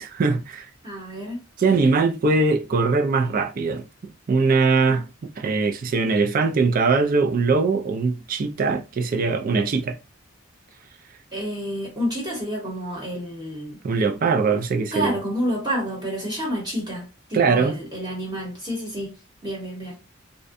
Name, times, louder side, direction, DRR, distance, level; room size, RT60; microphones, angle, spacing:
voice 1, 0.0-0.7 1.6-3.9 4.3-5.1 5.4-10.0 13.8-15.2 17.3-17.8, right 4 dB, 45° right, 0.3 m, -21 dB
voice 2, 0.8-1.4 11.3-13.8 14.9-19.1 19.4-20.0, equal, 20° right, 0.9 m, -29 dB
2.5 x 2.1 x 2.5 m
head